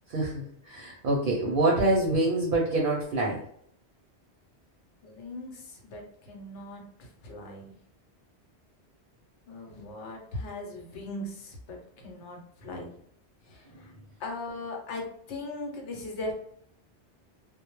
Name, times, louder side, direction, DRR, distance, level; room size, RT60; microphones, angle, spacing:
voice 1, 0.1-3.4, right 2 dB, 60° right, -3 dB, 0.6 m, -26 dB
voice 2, 5.0-7.8 9.5-13.0 13.5-13.9 14.2-16.3, left 2 dB, 90° left, 1 dB, 1.0 m, -39 dB
2.1 x 2.0 x 2.9 m, 0.67 s
omnidirectional pair, 1.1 m